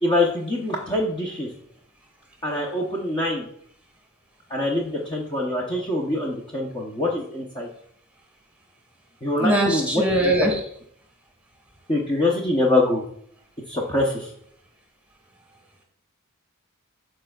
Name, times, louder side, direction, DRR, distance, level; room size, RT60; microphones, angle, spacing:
voice 1, 0.0-1.5 2.4-3.4 4.5-7.7 9.2-10.0 10.4-10.5 11.9-13.0 13.7-14.3, left 1 dB, 20° left, -3 dB, 0.9 m, -24 dB
voice 2, 9.4-10.6, right 1 dB, 5° right, 1 dB, 1.6 m, -21 dB
13.0 x 4.4 x 2.4 m, 0.66 s
head